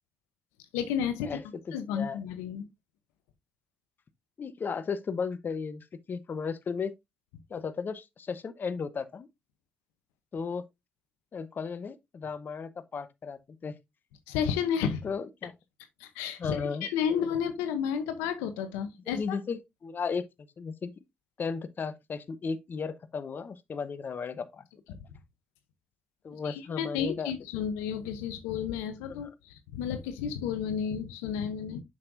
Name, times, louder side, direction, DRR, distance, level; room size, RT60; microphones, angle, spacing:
voice 1, 0.7-1.4 1.7-2.6 14.3-15.0 16.0-19.4 24.9-25.0 26.3-31.8, left 8 dB, 90° left, 0.7 m, -32 dB
voice 2, 1.2-2.2 4.4-6.9 7.5-9.3 10.3-10.7 11.3-13.7 15.0-15.5 16.4-17.2 19.1-20.3 20.6-21.0 21.4-25.0 26.2-27.3 29.2-29.3, left 5 dB, 55° left, 0.9 m, -35 dB
7.4 x 6.3 x 2.6 m
hypercardioid pair, 45°, 4 cm